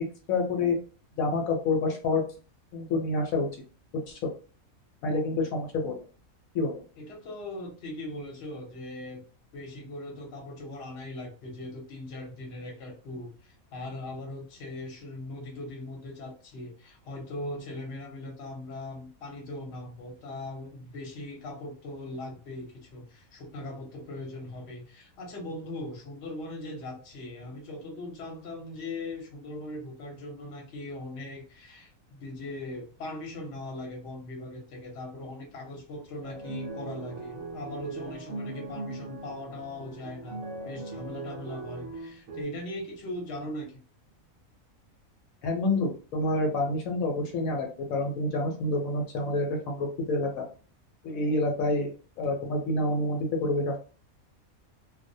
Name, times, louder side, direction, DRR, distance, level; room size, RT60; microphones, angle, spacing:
voice 1, 0.3-0.8 1.2-2.2 2.7-3.5 4.1-4.3 5.0-6.0 6.5-6.8 45.4-50.5 51.0-51.9 52.2-53.8, left 2 dB, 75° left, 2 dB, 1.0 m, -28 dB
voice 2, 7.0-9.2 9.5-43.7, left 1 dB, 55° left, 0 dB, 0.9 m, -40 dB
sound 1, 36.2-42.4, right 3 dB, 75° right, 0.9 m, -39 dB
2.4 x 2.0 x 2.6 m, 0.37 s
omnidirectional pair, 1.5 m